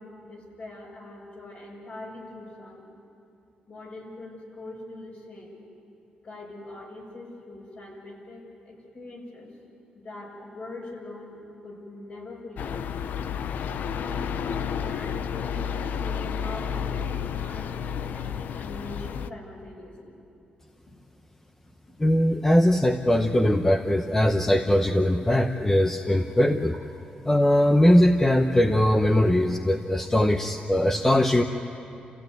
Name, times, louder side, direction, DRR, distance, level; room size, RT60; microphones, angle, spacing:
voice 1, 0.0-2.9 3.7-5.6 6.2-9.5 9.9-13.1 13.9-17.7 18.1-20.2 26.1-26.2 28.9-29.0, left 2 dB, 50° left, -1 dB, 6.4 m, -42 dB
sound 1, 12.6-19.3, left 7 dB, 70° left, 0.6 m, -31 dB
voice 2, 22.0-26.7 27.2-31.4, left 1 dB, 15° left, 5 dB, 0.9 m, -21 dB
30.0 x 15.0 x 9.4 m, 2.7 s
cardioid pair, 110°, 3 cm